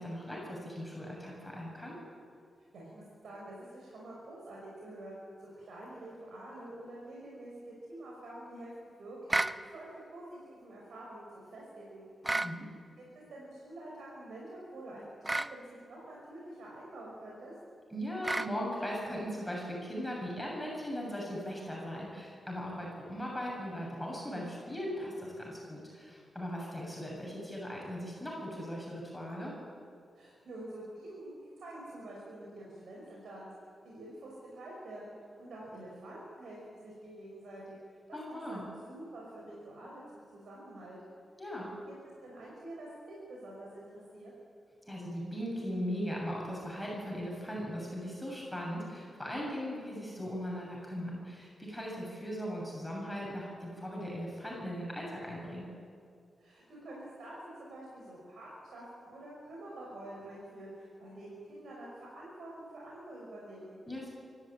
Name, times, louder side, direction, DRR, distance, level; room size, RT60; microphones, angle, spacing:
voice 1, 0.0-1.9 12.3-12.7 17.9-29.5 38.1-38.7 41.4-41.7 44.9-55.7 63.9-64.1, equal, 5° left, -3 dB, 7.4 m, -39 dB
voice 2, 2.7-9.4 9.7-12.1 13.0-17.5 30.1-33.5 33.8-37.8 38.1-41.0 41.9-42.0 42.2-44.3 56.4-63.8, right 1 dB, 80° right, -4 dB, 5.5 m, -47 dB
sound 1, 9.3-9.6 12.2-12.5 15.2-15.5 18.2-18.5, right 2 dB, 20° right, 0.6 m, -31 dB
24.5 x 13.5 x 9.0 m, 2.2 s
cardioid pair, 95°, 0 cm